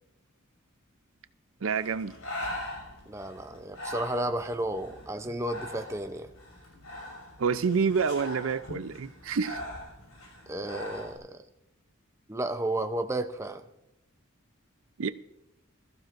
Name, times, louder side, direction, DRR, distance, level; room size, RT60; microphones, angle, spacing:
voice 1, 1.6-2.1 7.4-9.6 15.0-15.1, right 5 dB, 70° right, 0.5 m, -28 dB
Breathing, 1.7-11.2, left 1 dB, 75° left, 6.1 m, -42 dB
voice 2, 3.1-6.3 10.5-11.4 12.3-13.6, right 1 dB, 15° right, 0.6 m, -32 dB
20.5 x 14.5 x 2.6 m
head